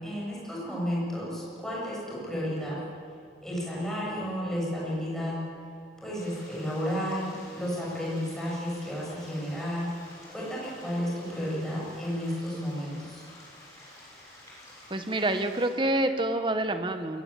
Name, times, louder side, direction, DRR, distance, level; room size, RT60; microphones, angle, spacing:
voice 1, 0.0-2.8 3.4-5.4 6.0-9.9 10.3-13.2, equal, ahead, -5 dB, 7.3 m, -32 dB
sound 1, 6.1-15.7, left 1 dB, 20° left, 7.3 m, -51 dB
voice 2, 14.9-17.2, right 1 dB, 30° right, 8 dB, 1.3 m, -27 dB
21.5 x 18.5 x 8.7 m, 2.3 s
head